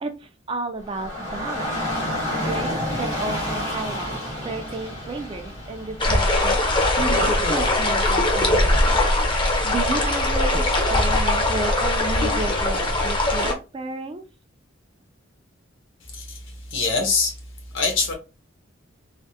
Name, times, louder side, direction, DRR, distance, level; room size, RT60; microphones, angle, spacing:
voice 1, 0.0-1.9 2.3-4.2 4.4-6.6 7.0-9.0 9.6-14.2, right 3 dB, 25° right, 0.3 m, -32 dB
Dog / Rain, 0.8-13.0, left 1 dB, 85° left, 1.5 m, -32 dB
sound 1, 6.0-13.5, left 1 dB, 25° left, 0.6 m, -21 dB
voice 2, 16.0-17.4 17.7-18.1, left 4 dB, 65° left, 1.1 m, -24 dB
3.3 x 2.1 x 2.7 m
head